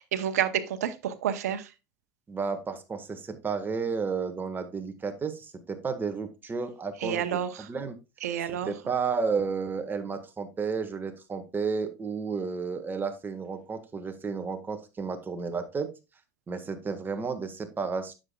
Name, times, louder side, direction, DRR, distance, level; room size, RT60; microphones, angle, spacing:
voice 1, 0.0-1.7 7.0-7.7 8.2-8.7, right 10 dB, 90° right, 11 dB, 0.9 m, -29 dB
voice 2, 2.3-8.0 8.6-15.9 16.5-18.1, right 5 dB, 25° right, 7 dB, 1.7 m, -32 dB
9.6 x 7.2 x 2.4 m, 0.26 s
supercardioid pair, 95°, 8 cm